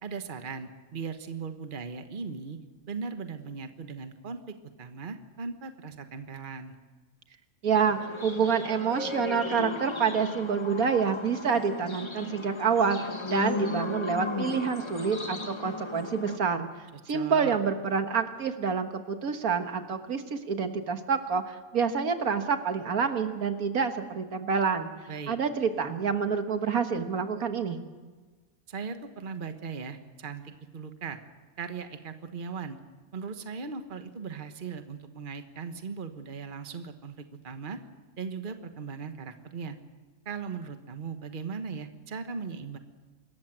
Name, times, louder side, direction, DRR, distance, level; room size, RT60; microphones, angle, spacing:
voice 1, 0.0-2.6 2.9-6.7 16.9-17.6 25.1-25.4 28.7-31.2 31.6-32.8 33.1-37.8 38.2-39.8 40.2-42.8, right 5 dB, 35° right, 8 dB, 1.4 m, -38 dB
voice 2, 7.6-13.0 13.3-16.7 17.1-24.9 25.3-27.8, right 6 dB, 75° right, 7 dB, 1.8 m, -27 dB
sound 1, 7.7-16.4, left 3 dB, 20° left, 1.1 m, -36 dB
25.5 x 14.0 x 9.0 m, 1.3 s
omnidirectional pair, 1.5 m